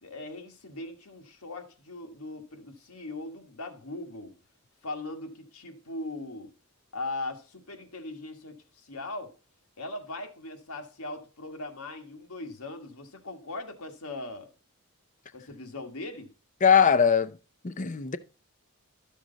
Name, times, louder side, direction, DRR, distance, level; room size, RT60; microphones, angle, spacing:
voice 1, 0.0-4.4 4.8-6.5 6.9-9.4 9.8-14.5 15.3-16.3, left 2 dB, 85° left, 1.6 m, -39 dB
voice 2, 16.6-17.4 17.6-18.2, left 7 dB, 35° left, 0.5 m, -21 dB
12.5 x 6.4 x 3.9 m
head